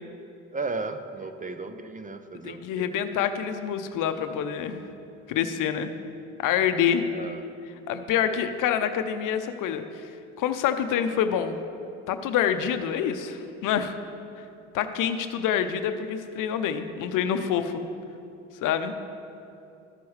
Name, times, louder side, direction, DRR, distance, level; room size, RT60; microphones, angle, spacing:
voice 1, 0.5-2.9 7.1-7.5, right 3 dB, 20° right, 8 dB, 0.6 m, -35 dB
voice 2, 2.4-4.8 5.3-5.9 6.4-7.0 7.9-10.1 10.4-11.6 12.1-14.0 14.7-17.8 18.6-18.9, left 8 dB, 60° left, 9 dB, 0.7 m, -26 dB
13.0 x 6.9 x 3.3 m, 2.6 s
hypercardioid pair, 65°, 36 cm